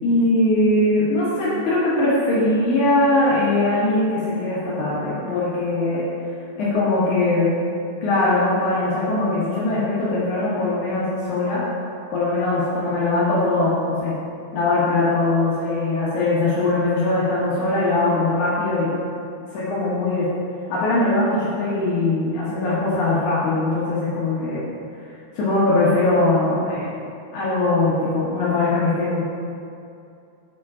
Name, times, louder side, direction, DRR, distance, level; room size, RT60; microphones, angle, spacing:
voice 1, 0.0-6.0 6.6-7.5 8.0-11.6 12.1-14.1 14.5-19.0 19.5-20.3 20.7-24.6 25.4-26.9 27.3-29.2, left 2 dB, 85° left, -9 dB, 1.7 m, -21 dB
8.1 x 4.9 x 4.8 m, 2.6 s
omnidirectional pair, 5.5 m